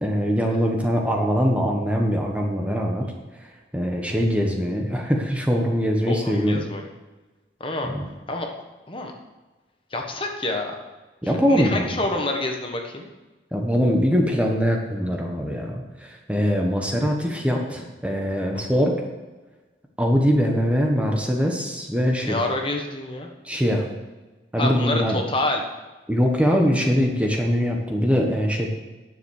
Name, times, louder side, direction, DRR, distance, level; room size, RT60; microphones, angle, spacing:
voice 1, 0.0-6.6 7.8-8.1 11.2-11.9 13.5-19.0 20.0-22.4 23.4-23.9 24.5-25.2 26.1-28.7, equal, 5° right, 1 dB, 1.2 m, -22 dB
voice 2, 6.1-6.8 7.6-7.9 8.3-8.5 8.9-9.1 9.9-10.7 11.2-13.1 17.7-17.8 18.5-18.8 22.2-23.3 24.6-25.6, left 2 dB, 30° left, 2 dB, 1.3 m, -27 dB
10.5 x 7.1 x 6.5 m, 1.2 s
head